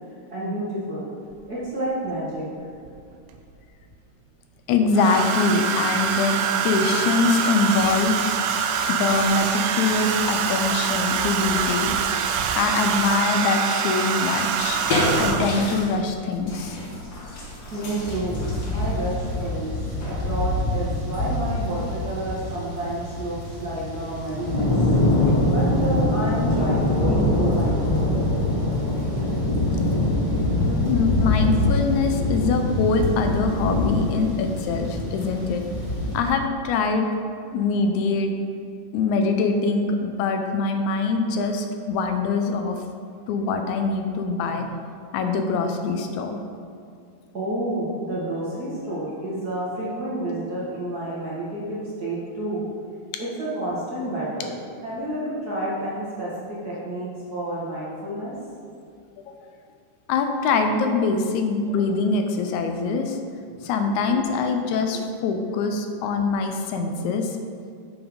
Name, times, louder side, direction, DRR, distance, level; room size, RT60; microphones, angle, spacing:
voice 1, 0.3-1.1 1.5-2.4 16.9-17.0 17.7-19.7 20.0-24.9 25.4-28.2 28.9-29.3 30.5-30.8 47.3-52.7 53.2-54.5 54.8-58.3 63.5-63.6 63.8-64.4, right 1 dB, 40° right, -8 dB, 1.5 m, -30 dB
Domestic sounds home sounds, 1.3-1.4 2.9-3.5 4.9-15.7 16.9-17.2 17.5-17.8, right 7 dB, 85° right, 2.1 m, -25 dB
voice 2, 4.7-6.4 6.6-8.3 8.9-12.0 12.6-14.8 15.2-16.8 25.3-25.5 30.9-35.6 36.1-37.1 37.5-38.3 38.9-42.8 43.3-44.7 45.1-46.4 59.2-59.3 60.1-63.2 63.6-67.4, left 4 dB, 80° left, 5 dB, 2.0 m, -23 dB
sound 1, 14.4-22.5, left 1 dB, 45° left, 1.4 m, -31 dB
sound 2, 18.1-36.2, left 2 dB, 15° left, 1.6 m, -24 dB
7.8 x 5.5 x 5.1 m, 2.3 s
omnidirectional pair, 3.5 m